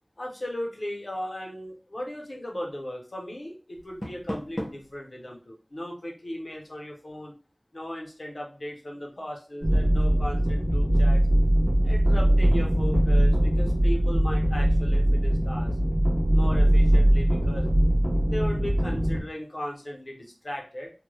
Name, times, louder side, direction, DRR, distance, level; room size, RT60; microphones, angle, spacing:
voice 1, 0.2-7.3 7.7-11.2 11.8-15.7 16.3-17.6 18.3-20.9, left 1 dB, 70° left, 0 dB, 0.7 m, -37 dB
Door, 3.7-5.0, equal, 30° left, 0.6 m, -35 dB
sound 1, 9.6-19.2, right 1 dB, 70° right, 0.7 m, -21 dB
2.1 x 2.1 x 3.0 m, 0.35 s
wide cardioid pair, 45°, 0 cm